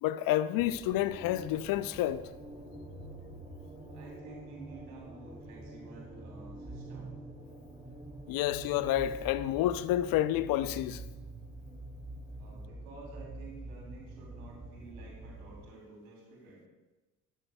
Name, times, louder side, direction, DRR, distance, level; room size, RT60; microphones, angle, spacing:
voice 1, 0.0-2.3 8.3-11.0, left 13 dB, 55° left, 0.6 m, -29 dB
sound 1, 0.6-15.7, right 1 dB, 15° right, 2.3 m, -46 dB
voice 2, 3.9-7.1 12.4-16.7, right 3 dB, 75° right, 3.4 m, -51 dB
13.0 x 11.0 x 2.3 m
hypercardioid pair, 55°, 42 cm